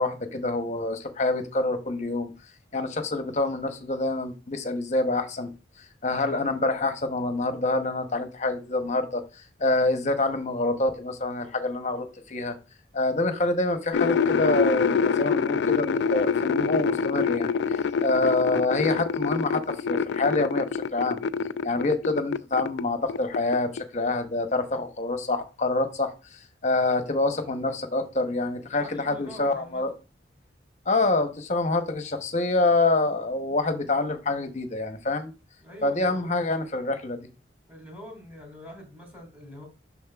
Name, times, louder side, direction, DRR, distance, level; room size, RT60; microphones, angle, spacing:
voice 1, 0.0-2.3 2.7-5.5 6.0-12.5 12.9-21.2 21.6-29.9 30.9-35.3 35.8-37.3, left 2 dB, 40° left, 0.9 m, -26 dB
sound 1, 13.9-22.8 23.1-23.8, left 6 dB, 75° left, 0.3 m, -26 dB
voice 2, 28.8-29.8 35.6-36.3 37.7-39.7, left 1 dB, 10° right, 2.6 m, -44 dB
7.2 x 6.2 x 2.3 m
head